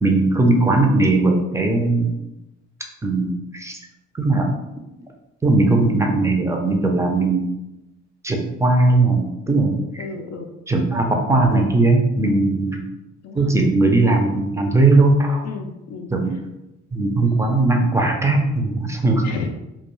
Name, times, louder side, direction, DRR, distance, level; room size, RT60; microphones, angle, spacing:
voice 1, 0.0-2.1 3.0-3.8 4.1-4.6 5.4-7.5 8.2-10.0 10.7-12.8 13.3-15.4 16.1-16.3 16.9-19.2, right 2 dB, 10° right, 2 dB, 0.4 m, -18 dB
voice 2, 10.0-10.5 12.2-12.4 13.2-13.5 15.4-16.1 19.2-19.5, left 5 dB, 60° left, 3 dB, 0.4 m, -32 dB
2.2 x 2.2 x 3.0 m, 0.94 s
cardioid pair, 90°, 30 cm